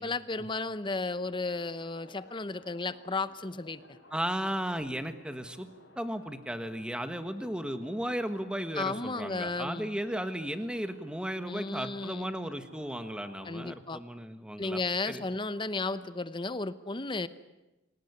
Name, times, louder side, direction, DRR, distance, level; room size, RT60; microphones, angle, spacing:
voice 1, 0.0-3.8 8.8-10.0 11.5-12.3 13.4-14.0 14.6-17.3, left 3 dB, 25° left, 14 dB, 0.9 m, -34 dB
sound 1, 1.0-13.6, left 1 dB, 80° left, 5.7 m, -57 dB
voice 2, 4.1-5.7 6.0-15.2, equal, 5° right, 9 dB, 1.5 m, -35 dB
27.5 x 18.0 x 9.8 m, 1.0 s
head